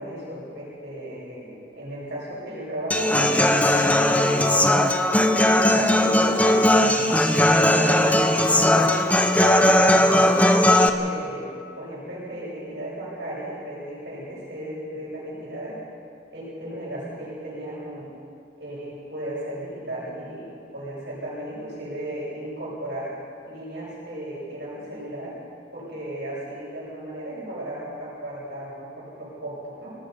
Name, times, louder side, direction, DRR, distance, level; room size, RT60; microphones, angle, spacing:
voice 1, 0.0-7.0 7.6-8.9 9.5-15.8 16.3-18.1 18.6-23.2 23.5-25.4 25.7-30.0, right 1 dB, 65° right, -8 dB, 7.2 m, -35 dB
Human voice / Acoustic guitar, 2.9-10.9, left 1 dB, 10° left, 0.9 m, -18 dB
sound 1, 9.4-11.3, right 4 dB, 75° left, 4.5 m, -31 dB
26.5 x 18.5 x 5.6 m, 2.4 s
head